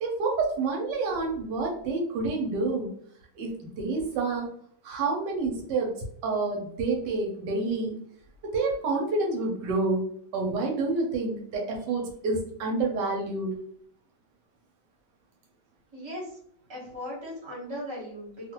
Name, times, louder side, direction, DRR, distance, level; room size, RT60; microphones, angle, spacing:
voice 1, 0.0-2.9 3.4-4.5 4.8-8.0 8.4-10.0 10.3-13.5, right 3 dB, 80° right, 1 dB, 1.3 m, -28 dB
voice 2, 15.9-16.4 16.7-18.5, equal, 20° right, -4 dB, 1.0 m, -38 dB
2.9 x 2.4 x 2.8 m, 0.63 s
omnidirectional pair, 1.9 m